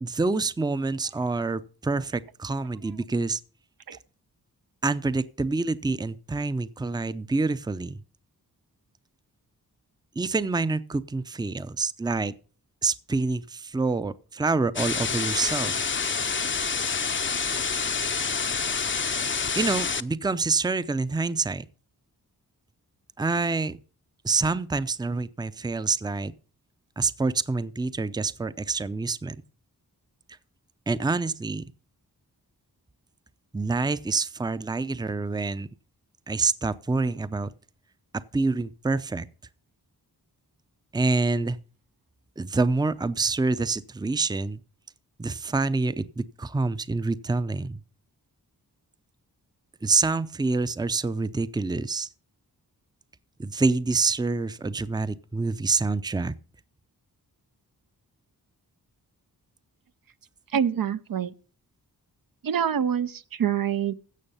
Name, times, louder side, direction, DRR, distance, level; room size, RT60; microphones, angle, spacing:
voice 1, 0.0-3.4 4.8-8.0 10.2-12.3 12.8-16.0 19.5-21.7 23.2-23.8 24.2-26.3 27.0-29.4 30.9-31.6 33.5-35.7 36.3-37.5 38.1-39.3 40.9-41.6 42.4-44.6 45.2-47.8 49.8-52.1 53.4-56.3, right 3 dB, 10° right, 0.6 m, -27 dB
sound 1, 14.8-20.0, left 5 dB, 30° left, 0.6 m, -27 dB
voice 2, 60.5-61.3 62.4-63.9, right 8 dB, 60° right, 0.6 m, -26 dB
16.0 x 6.3 x 5.5 m
cardioid pair, 65°, 38 cm